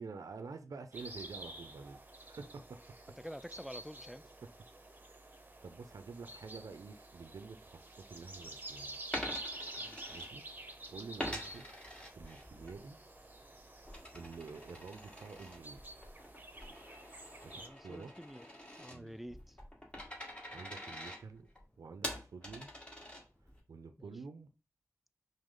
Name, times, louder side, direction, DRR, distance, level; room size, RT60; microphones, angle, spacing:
voice 1, 0.0-2.6 5.1-9.1 10.1-10.4 10.9-11.7 12.2-13.0 14.1-15.8 17.4-18.1 18.9-19.1 20.5-21.5 21.8-22.7 23.7-24.5, right 4 dB, 80° right, 0.4 m, -49 dB
sound 1, 0.9-17.7, right 2 dB, 30° right, 0.7 m, -49 dB
voice 2, 3.2-4.2 9.8-10.1 11.4-11.5 17.5-18.5 18.8-19.6 24.0-24.1, equal, 5° right, 0.3 m, -48 dB
Coin (dropping), 9.0-10.7 11.2-12.8 13.2-23.6, left 1 dB, 20° left, 1.4 m, -46 dB
5.0 x 2.0 x 3.7 m
cardioid pair, 40°, 6 cm